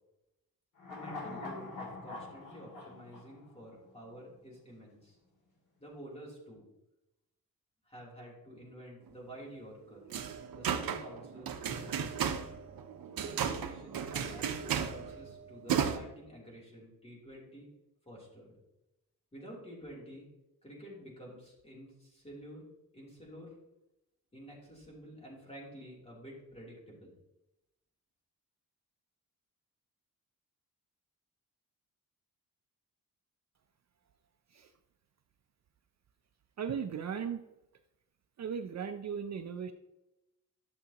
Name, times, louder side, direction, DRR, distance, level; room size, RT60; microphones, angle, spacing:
sound 1, 0.8-4.2 4.5-4.6, left 3 dB, 60° left, 2.4 m, -44 dB
voice 1, 0.9-5.2 5.8-6.6 7.8-10.0 10.5-12.4 13.2-17.7 18.1-18.5 19.3-20.3 20.6-22.7 22.9-23.5 24.3-27.1, equal, 15° left, -4 dB, 3.0 m, -50 dB
sound 2, 10.1-16.0, right 8 dB, 75° right, 0.8 m, -35 dB
voice 2, 36.6-37.4 38.4-39.7, right 7 dB, 50° right, 8 dB, 0.5 m, -37 dB
11.5 x 6.8 x 2.9 m, 0.93 s
wide cardioid pair, 150°, 36 cm